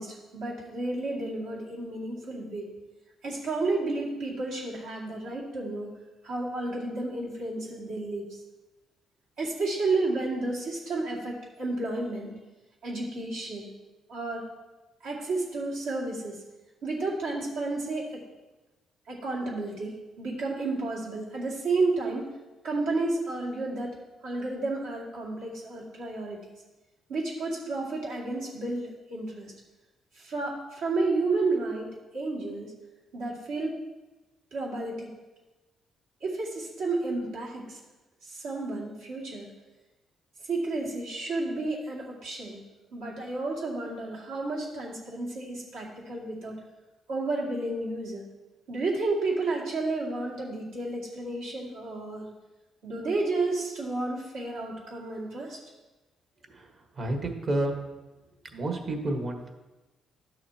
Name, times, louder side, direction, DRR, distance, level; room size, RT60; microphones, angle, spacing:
voice 1, 0.0-2.7 3.2-5.9 6.2-8.4 9.4-12.3 12.8-13.7 14.1-14.5 15.0-16.4 16.8-18.2 19.1-22.3 22.6-24.0 24.2-26.4 27.1-29.5 30.1-32.7 33.1-33.8 34.5-35.1 36.2-37.8 38.2-39.5 40.4-42.6 42.9-46.6 47.1-48.3 48.7-52.3 52.8-55.6, right 2 dB, 85° right, -4 dB, 2.3 m, -31 dB
voice 2, 56.5-57.8 58.5-59.5, right 1 dB, 50° right, 3 dB, 1.5 m, -30 dB
12.0 x 6.5 x 2.9 m, 1.1 s
cardioid pair, 90°, 0 cm